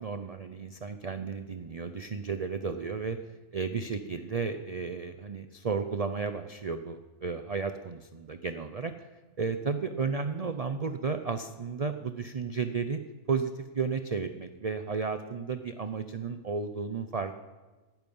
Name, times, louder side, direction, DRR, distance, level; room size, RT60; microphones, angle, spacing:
voice 1, 0.0-3.2 3.5-9.1 9.4-13.0 13.3-17.4, right 5 dB, 45° right, 8 dB, 0.5 m, -33 dB
17.5 x 12.0 x 5.5 m, 1.2 s
omnidirectional pair, 1.6 m